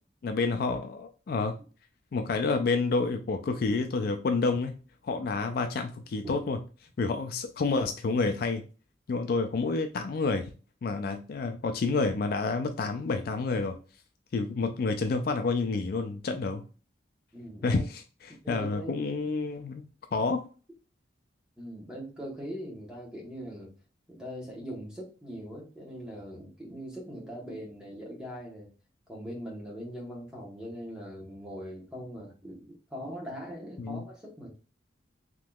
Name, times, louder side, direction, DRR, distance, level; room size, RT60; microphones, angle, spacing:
voice 1, 0.2-1.6 2.1-4.8 5.0-6.6 7.0-8.6 9.1-10.5 10.8-13.8 14.3-16.6 17.6-20.4 33.8-34.0, left 3 dB, 55° left, 7 dB, 0.3 m, -29 dB
voice 2, 17.3-17.8 18.4-18.9 21.6-23.7 24.1-28.7 29.1-32.6 32.9-34.6, equal, 5° right, -3 dB, 1.1 m, -41 dB
3.5 x 2.9 x 2.3 m, 0.34 s
head